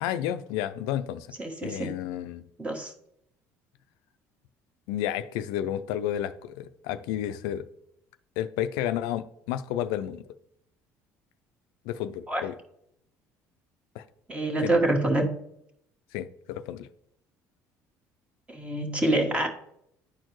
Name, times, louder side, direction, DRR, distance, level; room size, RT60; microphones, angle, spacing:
voice 1, 0.0-1.3 1.6-2.5 4.9-7.7 8.4-10.2 11.9-12.6 14.0-14.1 14.6-14.8 16.1-16.9, left 11 dB, 85° left, 0.4 m, -31 dB
voice 2, 1.4-2.0 2.6-2.9 12.3-12.4 14.3-15.3 18.5-19.5, right 2 dB, 20° right, 1.4 m, -26 dB
10.0 x 4.4 x 3.0 m
supercardioid pair, 95°, 7 cm